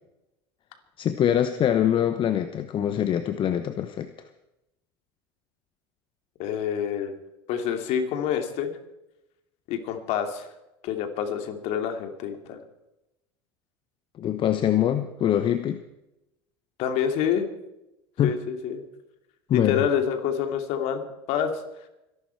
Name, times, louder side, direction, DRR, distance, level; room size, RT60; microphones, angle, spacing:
voice 1, 1.0-4.1 14.2-15.8 18.2-18.4 19.5-19.8, left 10 dB, 40° left, 10 dB, 1.0 m, -24 dB
voice 2, 6.4-7.1 7.5-8.7 9.7-10.5 10.8-12.6 16.8-17.5 18.2-18.8 19.5-21.0 21.3-21.5, left 8 dB, 60° left, 6 dB, 2.7 m, -27 dB
24.5 x 11.5 x 4.6 m, 0.90 s
hypercardioid pair, 85°, 13 cm